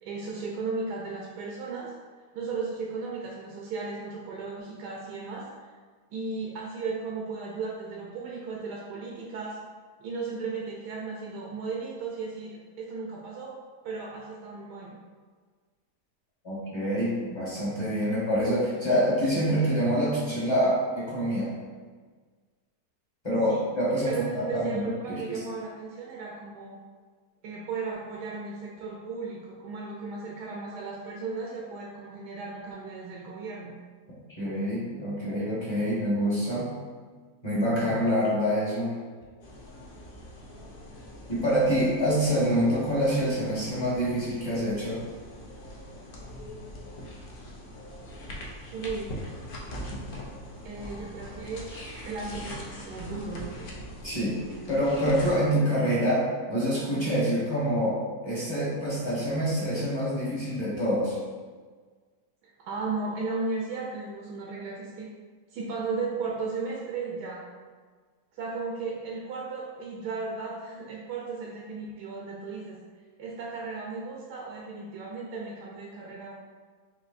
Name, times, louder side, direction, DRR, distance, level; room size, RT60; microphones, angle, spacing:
voice 1, 0.0-1.9 2.3-5.5 6.1-9.6 10.0-13.5 13.8-15.0 23.5-23.7 24.0-26.8 27.4-33.7 48.7-49.2 50.6-51.7 52.0-53.7 62.4-65.1 65.5-67.4 68.3-72.8 73.2-76.3, right 4 dB, 90° right, -3 dB, 1.2 m, -35 dB
voice 2, 16.4-21.5 23.2-25.4 34.4-36.7 37.4-38.9 41.3-45.0 54.0-58.0 58.2-61.2, equal, 20° left, -8 dB, 0.8 m, -26 dB
sound 1, 39.4-55.3, equal, 70° left, 0.5 m, -42 dB
5.0 x 2.6 x 2.5 m, 1.5 s
omnidirectional pair, 1.7 m